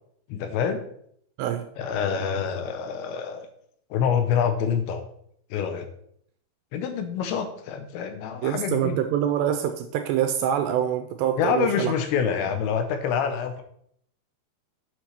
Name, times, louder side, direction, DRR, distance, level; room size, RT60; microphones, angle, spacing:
voice 1, 0.3-0.8 1.8-3.5 3.9-5.0 5.5-5.9 6.7-9.0 11.4-13.6, left 7 dB, 85° left, 8 dB, 2.9 m, -26 dB
voice 2, 8.4-11.9, right 10 dB, 85° right, 7 dB, 2.5 m, -25 dB
9.3 x 6.5 x 4.4 m, 0.67 s
omnidirectional pair, 5.5 m